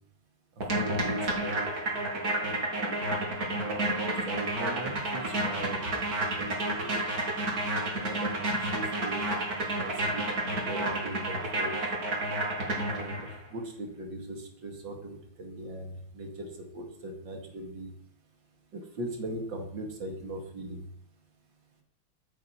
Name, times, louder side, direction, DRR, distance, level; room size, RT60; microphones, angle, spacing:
sound 1, 0.6-13.4, right 1 dB, 50° right, 3.2 m, -31 dB
voice 1, 0.7-1.7 3.5-5.8 6.1-7.0 8.0-11.9 12.9-17.9 18.7-20.8, right 1 dB, 70° right, 2 dB, 3.0 m, -39 dB
14.0 x 9.4 x 4.7 m, 0.66 s
omnidirectional pair, 2.1 m